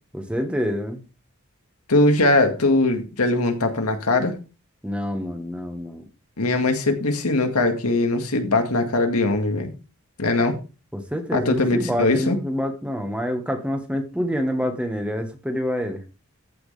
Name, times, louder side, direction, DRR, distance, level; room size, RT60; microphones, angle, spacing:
voice 1, 0.1-1.0 4.8-6.1 10.9-16.0, equal, 5° right, 1.6 m, -27 dB
voice 2, 1.9-4.3 6.4-9.7 10.2-10.6 11.3-12.4, left 2 dB, 85° left, 1.9 m, -21 dB
14.5 x 6.2 x 3.4 m
head